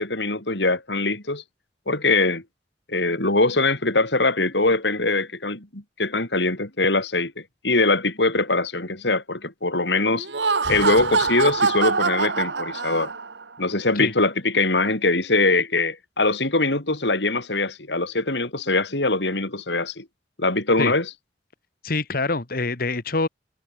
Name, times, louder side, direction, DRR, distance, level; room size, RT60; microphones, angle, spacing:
voice 1, 0.0-1.4 1.9-2.4 2.9-10.3 10.7-13.1 13.6-20.1 20.4-21.1, left 2 dB, 75° left, 4.6 m, -22 dB
Laughter, 10.2-13.4, right 4 dB, 85° right, 1.7 m, -24 dB
voice 2, 21.8-23.3, left 3 dB, 55° left, 1.8 m, -25 dB
head